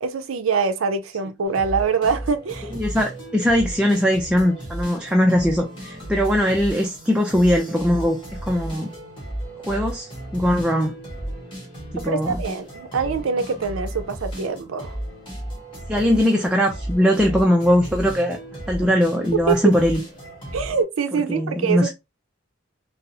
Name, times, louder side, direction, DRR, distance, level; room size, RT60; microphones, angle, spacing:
voice 1, 0.0-2.8 12.1-15.0 19.5-19.7 20.5-21.9, right 5 dB, 80° right, 0.5 m, -24 dB
sound 1, 1.4-20.8, right 1 dB, 25° left, 1.6 m, -34 dB
voice 2, 2.7-8.9 9.7-11.0 11.9-12.4 15.9-18.4 18.7-20.0 21.3-21.9, equal, 5° right, 0.3 m, -20 dB
4.0 x 2.0 x 2.7 m
head